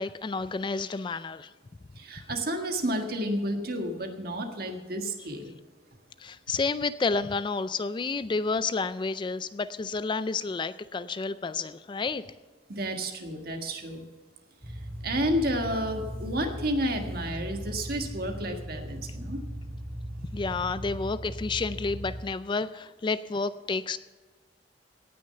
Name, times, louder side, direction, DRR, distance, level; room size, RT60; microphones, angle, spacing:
voice 1, 0.0-1.5 6.2-12.2 20.3-24.0, left 4 dB, 25° left, 14 dB, 0.3 m, -30 dB
voice 2, 2.0-5.5 12.7-14.0 15.0-19.4, equal, 55° right, 4 dB, 1.6 m, -31 dB
sound 1, 14.6-22.2, equal, 30° right, 3.3 m, -38 dB
17.5 x 6.4 x 5.7 m, 1.3 s
head